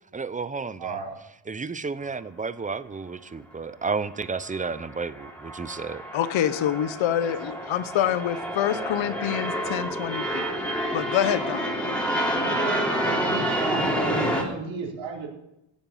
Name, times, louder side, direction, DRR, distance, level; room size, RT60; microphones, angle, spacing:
voice 1, 0.1-1.0 1.5-6.0, right 4 dB, 15° right, 15 dB, 0.7 m, -32 dB
voice 2, 0.8-1.1 12.4-15.3, right 5 dB, 65° right, -2 dB, 4.6 m, -34 dB
sound 1, 4.5-14.4, equal, ahead, 3.5 m, -28 dB
voice 3, 6.1-10.5 10.9-12.0, left 10 dB, 70° left, 13 dB, 1.3 m, -26 dB
16.0 x 9.0 x 7.3 m, 0.84 s
cardioid pair, 115°, 48 cm